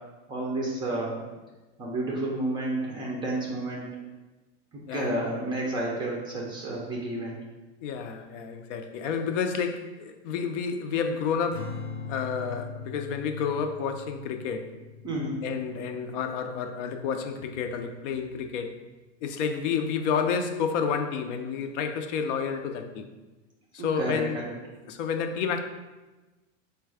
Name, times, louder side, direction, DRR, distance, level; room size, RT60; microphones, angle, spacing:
voice 1, 0.3-1.2 1.8-3.9 4.9-7.4 15.0-15.4 23.8-24.5, right 1 dB, 15° right, -3 dB, 0.3 m, -30 dB
voice 2, 7.8-11.8 12.1-14.7 15.4-18.8 19.2-23.1 23.7-24.4 24.9-25.6, left 6 dB, 75° left, 7 dB, 0.6 m, -30 dB
Strum, 11.5-17.9, left 5 dB, 35° left, 0.7 m, -42 dB
4.4 x 2.3 x 4.7 m, 1.2 s
supercardioid pair, 155°, 37 cm